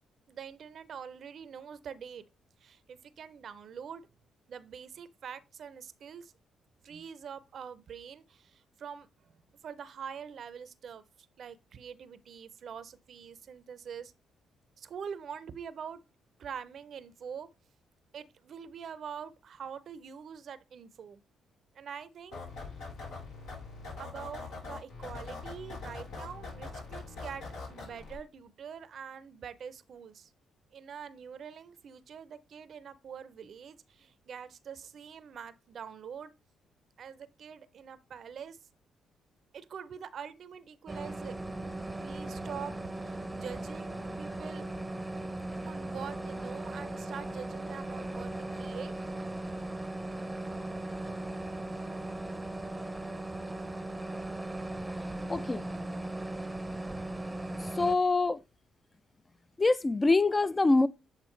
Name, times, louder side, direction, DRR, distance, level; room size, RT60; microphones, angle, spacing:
voice 1, 0.3-2.2 2.6-4.0 4.5-6.3 6.8-11.0 11.4-14.1 14.8-16.0 16.4-17.5 18.1-21.2 21.7-22.4 24.0-27.4 27.7-30.3 30.7-36.3 37.0-38.6 39.5-41.4 42.0-44.7 45.7-48.9, right 7 dB, 65° right, 0.6 m, -44 dB
sound 1, 22.3-28.2, left 3 dB, 80° left, 3.5 m, -42 dB
sound 2, 40.9-58.0, right 1 dB, 15° right, 0.7 m, -38 dB
voice 2, 55.3-55.6 57.8-58.4 59.6-60.9, left 3 dB, 30° left, 0.5 m, -25 dB
8.1 x 3.7 x 3.2 m
supercardioid pair, 55°, 0 cm